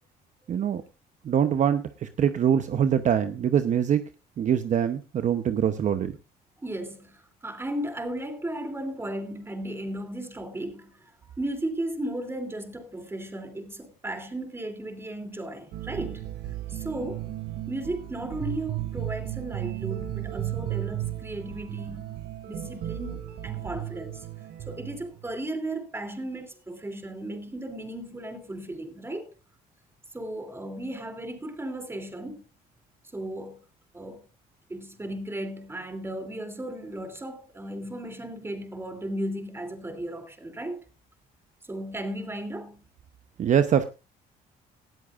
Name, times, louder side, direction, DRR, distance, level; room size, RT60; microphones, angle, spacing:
voice 1, 0.5-0.8 1.2-4.0 4.4-6.2 43.4-43.9, right 8 dB, 45° right, 0.8 m, -24 dB
voice 2, 6.6-11.1 11.4-16.3 16.7-17.3 17.7-22.2 22.4-24.3 24.7-29.3 30.1-32.4 33.1-33.6 33.9-34.3 34.7-40.8 41.6-42.8, right 1 dB, 15° right, 3.0 m, -35 dB
sound 1, 15.7-25.3, right 14 dB, 75° right, 2.3 m, -35 dB
18.5 x 13.0 x 2.5 m
cardioid pair, 110°, 17 cm